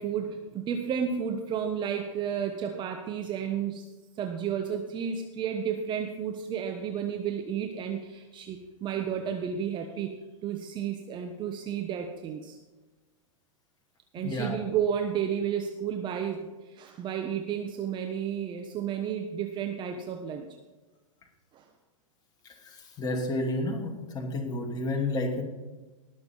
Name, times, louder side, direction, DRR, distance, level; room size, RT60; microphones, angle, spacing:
voice 1, 0.0-3.9 4.2-10.1 10.4-12.6 14.1-20.5 21.5-21.6, right 8 dB, 25° right, 5 dB, 1.1 m, -32 dB
voice 2, 14.2-14.6 22.6-25.4, left 2 dB, 25° left, 1 dB, 2.7 m, -31 dB
18.5 x 6.9 x 5.5 m, 1.2 s
hypercardioid pair, 125°, 17 cm